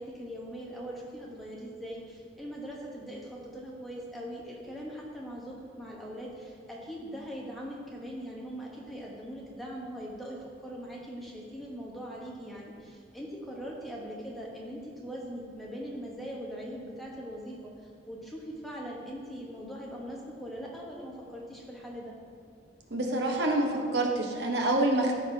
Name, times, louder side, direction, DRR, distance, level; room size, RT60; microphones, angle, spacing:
voice 1, 0.0-22.2, equal, ahead, -4 dB, 1.0 m, -41 dB
voice 2, 22.9-25.1, right 1 dB, 60° right, 1 dB, 0.9 m, -27 dB
13.5 x 4.7 x 2.7 m, 2.1 s
head